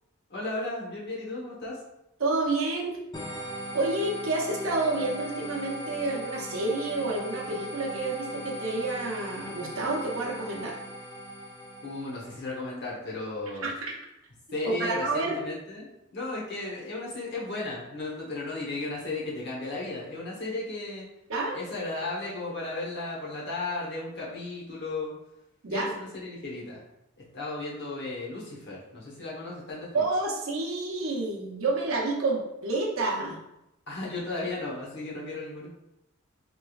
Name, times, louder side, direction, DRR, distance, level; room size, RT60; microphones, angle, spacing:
voice 1, 0.3-1.8 11.8-13.7 14.5-21.1 21.5-25.1 25.7-26.8 27.2-30.0 33.9-35.7, left 2 dB, 55° left, -4 dB, 1.0 m, -35 dB
voice 2, 2.2-3.0 3.7-10.8 13.6-13.7 14.6-15.4 21.3-21.6 25.6-25.9 29.9-33.4, right 2 dB, 80° right, -2 dB, 0.8 m, -29 dB
sound 1, 3.1-12.5, equal, 20° left, 0.4 m, -39 dB
3.4 x 3.0 x 2.3 m, 0.88 s
head